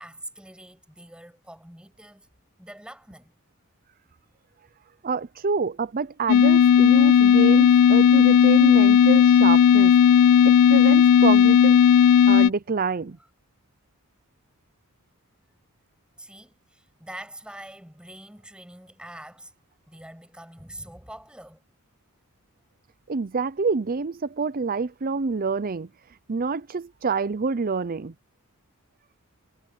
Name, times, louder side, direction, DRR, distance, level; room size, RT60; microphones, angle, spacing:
voice 1, 0.0-2.3 2.6-3.3 16.2-19.5 19.9-21.6, right 1 dB, 5° right, 7.0 m, -44 dB
voice 2, 5.0-9.9 10.4-11.8 12.3-13.2 23.1-25.9 26.3-28.1, right 4 dB, 40° right, 0.6 m, -27 dB
sound 1, 6.3-12.5, left 8 dB, 90° left, 0.3 m, -15 dB
head